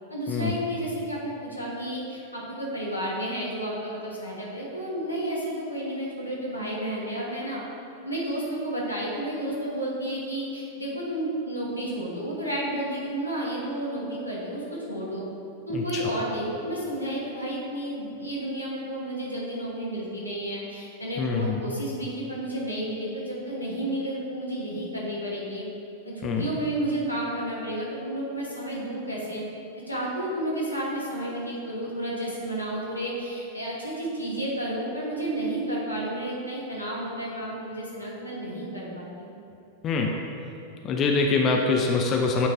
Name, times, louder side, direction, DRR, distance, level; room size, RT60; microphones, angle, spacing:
voice 1, 0.1-7.6 8.0-15.2 15.7-25.6 26.0-29.4 29.9-39.3, right 1 dB, 90° left, -5 dB, 1.3 m, -31 dB
voice 2, 15.7-16.1 21.2-21.6 26.2-26.5 39.8-40.2 40.8-42.5, left 4 dB, 30° left, 1 dB, 0.5 m, -24 dB
8.8 x 3.1 x 3.6 m, 2.6 s
figure-of-eight pair, 90°, 0 cm